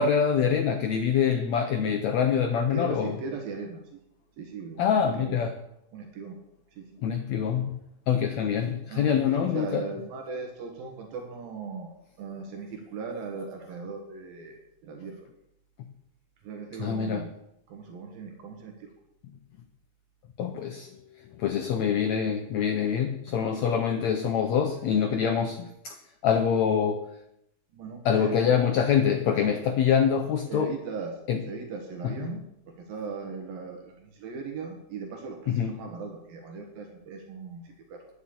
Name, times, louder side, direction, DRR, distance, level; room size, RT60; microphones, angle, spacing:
voice 1, 0.0-3.1 4.8-5.5 7.0-7.8 8.1-9.8 16.8-17.2 20.4-20.9 21.4-26.0 26.2-27.0 28.0-30.7 31.3-31.4 32.0-32.1 35.5-35.7, left 7 dB, 80° left, 6 dB, 1.6 m, -25 dB
voice 2, 2.7-4.0 4.4-5.4 5.9-6.4 6.7-7.0 8.9-15.3 16.4-17.3 17.7-18.9 27.7-28.5 30.5-38.1, right 4 dB, 75° right, 2 dB, 3.3 m, -38 dB
10.0 x 7.1 x 8.7 m, 0.80 s
omnidirectional pair, 4.2 m